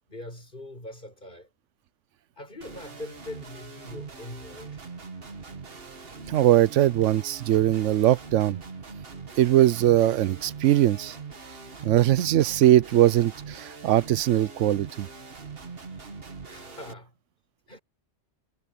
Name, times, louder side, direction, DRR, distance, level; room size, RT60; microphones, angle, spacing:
voice 1, 0.1-1.5 2.4-4.8 5.8-5.9 15.9-16.1 16.5-17.1 17.7-17.8, left 1 dB, 40° left, 6.4 m, -42 dB
sound 1, 2.6-16.9, right 4 dB, 50° right, 1.8 m, -42 dB
voice 2, 6.3-8.6 9.4-11.2 11.8-15.1, right 13 dB, 90° right, 0.9 m, -21 dB
omnidirectional pair, 1.2 m